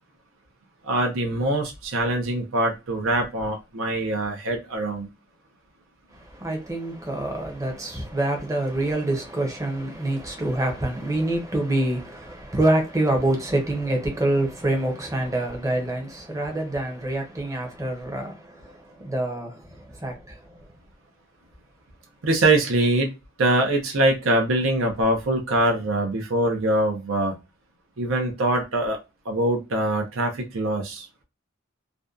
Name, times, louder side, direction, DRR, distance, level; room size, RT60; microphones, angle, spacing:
voice 1, 0.8-5.1 22.2-23.1 23.4-27.4 28.0-29.0 29.2-31.1, right 1 dB, 75° right, 0.6 m, -23 dB
voice 2, 6.1-20.7, right 1 dB, 15° right, 0.7 m, -26 dB
2.5 x 2.2 x 2.3 m
head